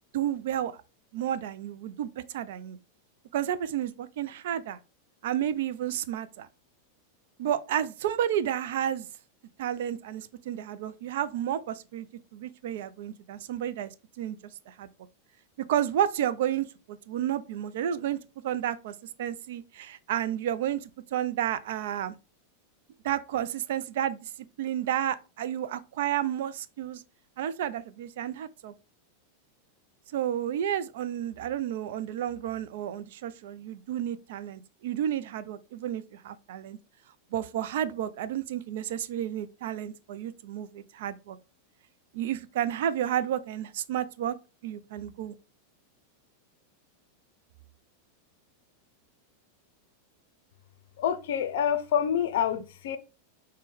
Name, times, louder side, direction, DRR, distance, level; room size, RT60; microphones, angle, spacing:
voice 1, 0.1-0.7 1.1-2.1 2.3-2.8 3.3-4.8 5.2-6.5 7.4-9.1 9.6-12.1 12.3-13.9 14.2-14.4 14.7-14.9 15.7-18.2 18.4-20.8 21.1-22.1 23.0-24.2 24.6-27.0 27.4-28.7 30.1-36.8 37.3-41.4 42.1-44.3 44.6-45.3, right 10 dB, 55° right, 0.3 m, -31 dB
voice 2, 51.0-53.0, left 8 dB, 55° left, 0.5 m, -27 dB
5.1 x 2.1 x 3.6 m
figure-of-eight pair, 90°, 0 cm